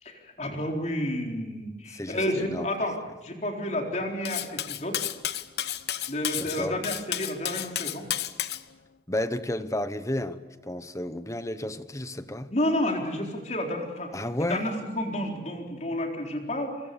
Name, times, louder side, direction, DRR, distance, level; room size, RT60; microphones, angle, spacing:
voice 1, 0.0-5.0 6.1-8.1 12.5-16.8, left 1 dB, 40° left, 4.2 m, -30 dB
voice 2, 1.9-2.7 6.4-6.8 9.1-12.5 14.1-14.7, left 1 dB, 20° left, 1.0 m, -32 dB
Cutlery silverware, 4.2-8.6, left 11 dB, 70° left, 1.0 m, -32 dB
29.0 x 23.5 x 7.0 m
head